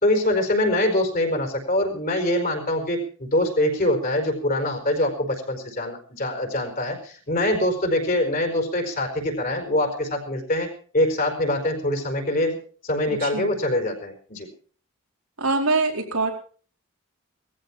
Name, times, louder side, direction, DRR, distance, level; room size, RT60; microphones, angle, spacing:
voice 1, 0.0-10.7 10.9-12.6 12.8-14.5, left 1 dB, 40° left, 4 dB, 4.8 m, -24 dB
voice 2, 15.4-16.3, right 3 dB, 85° right, 0 dB, 4.6 m, -23 dB
19.5 x 14.5 x 4.5 m, 0.43 s
head